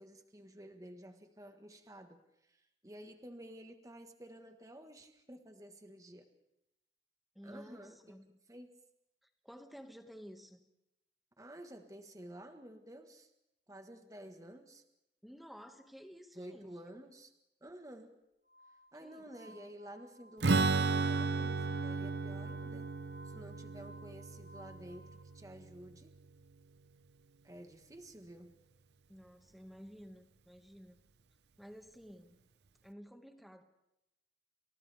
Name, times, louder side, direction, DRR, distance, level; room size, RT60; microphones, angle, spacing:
voice 1, 0.0-6.3 7.4-8.2 8.5-8.8 11.4-13.3 13.7-14.8 16.3-17.3 17.6-18.2 18.9-22.9 23.2-26.2 27.4-28.6, right 1 dB, 20° right, 6 dB, 1.5 m, -52 dB
voice 2, 7.4-8.2 9.2-10.6 15.2-17.0 19.0-19.5 29.1-31.0 31.6-32.4 32.8-33.6, equal, ahead, 5 dB, 1.8 m, -53 dB
Glass, 18.4-25.2, equal, 60° left, 6.4 m, -59 dB
Strum, 20.4-26.0, right 3 dB, 70° right, 0.8 m, -34 dB
30.0 x 28.0 x 3.5 m, 0.89 s
head